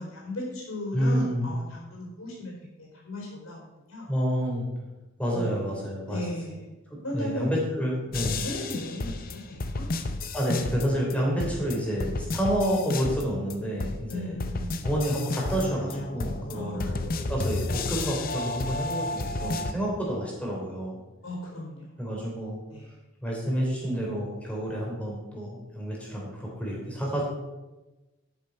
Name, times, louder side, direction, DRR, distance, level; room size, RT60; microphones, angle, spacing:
voice 1, 0.0-3.6 3.9-4.1 5.3-5.5 6.1-6.7 7.0-7.5 8.1-9.9 14.1-14.9 16.5-17.3 21.2-21.9 22.7-23.0, left 1 dB, 90° left, -3 dB, 3.9 m, -36 dB
voice 2, 0.9-1.5 4.1-4.6 5.2-6.2 6.9-8.5 10.3-14.3 14.8-17.0 17.3-21.0 22.0-22.6 23.2-27.2, equal, 5° left, -3 dB, 3.3 m, -29 dB
sound 1, 8.1-11.1 11.4-13.5 13.8-19.7, left 2 dB, 45° left, 0.7 m, -32 dB
12.0 x 7.1 x 5.2 m, 1.1 s
head